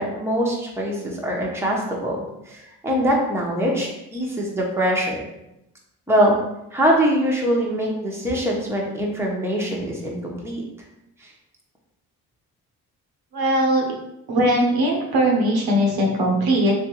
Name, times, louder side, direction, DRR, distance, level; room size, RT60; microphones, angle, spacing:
voice 1, 0.0-2.2 2.5-5.2 6.1-6.3 6.7-10.6, equal, 5° right, -3 dB, 1.0 m, -23 dB
voice 2, 13.3-13.8 14.3-16.7, right 1 dB, 70° right, -1 dB, 1.0 m, -19 dB
3.4 x 2.9 x 3.0 m, 0.86 s
supercardioid pair, 50°, 39 cm